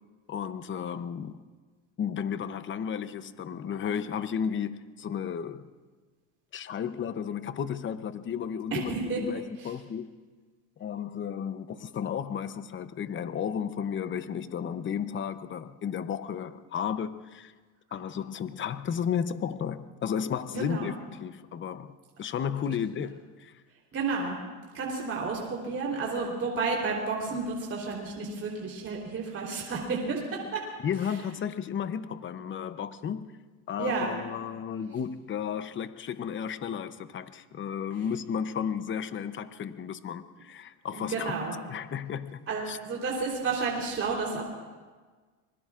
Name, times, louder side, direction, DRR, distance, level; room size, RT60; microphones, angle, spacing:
voice 1, 0.3-1.4 2.0-5.7 6.5-10.1 10.8-17.5 17.9-23.5 30.5-30.6 30.8-33.3 33.7-41.3 41.7-42.8, left 8 dB, 30° left, 12 dB, 0.7 m, -33 dB
voice 2, 8.7-9.2 9.6-9.7 20.5-20.9 23.9-24.4 24.7-30.6 33.8-34.1 40.9-41.6 42.5-44.4, right 4 dB, 35° right, -2 dB, 3.6 m, -31 dB
26.0 x 21.0 x 2.5 m, 1.4 s
cardioid pair, 115°, 37 cm